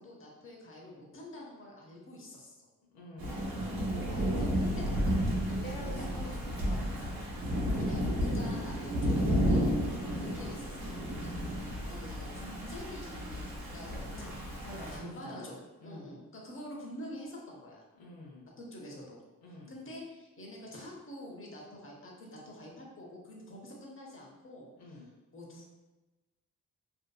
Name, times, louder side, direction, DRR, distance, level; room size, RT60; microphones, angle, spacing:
voice 1, 0.0-2.7 4.1-5.4 7.8-9.7 10.2-11.3 11.9-14.3 14.9-15.6 15.8-17.8 18.6-19.2 19.7-25.0 25.3-25.7, equal, 35° left, -2 dB, 0.9 m, -46 dB
voice 2, 2.9-3.4 4.1-4.5 5.4-7.1 9.9-10.2 14.1-15.5 15.8-16.1 18.0-18.5 19.4-19.7 24.8-25.1, left 1 dB, 85° left, -3 dB, 0.6 m, -47 dB
Thunder / Rain, 3.2-15.0, equal, 80° right, 0.9 m, -32 dB
2.7 x 2.4 x 2.3 m, 1.1 s
supercardioid pair, 45°, 36 cm